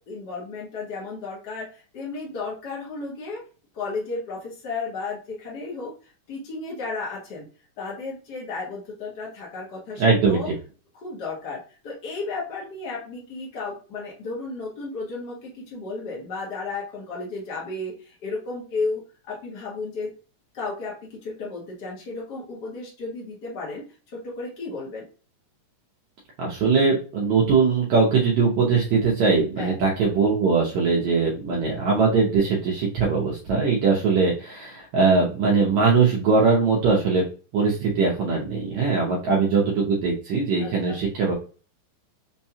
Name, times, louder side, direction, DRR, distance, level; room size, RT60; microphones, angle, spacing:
voice 1, 0.1-1.7 1.9-3.4 3.7-5.9 6.3-7.4 7.8-10.5 11.0-20.1 20.5-23.8 24.2-25.0 29.6-29.8 38.9-39.4 40.6-41.0, left 3 dB, 70° left, -4 dB, 0.9 m, -33 dB
voice 2, 10.0-10.4 26.4-37.3 37.5-41.3, right 4 dB, 70° right, -3 dB, 1.8 m, -21 dB
5.4 x 2.3 x 2.8 m, 0.36 s
omnidirectional pair, 3.8 m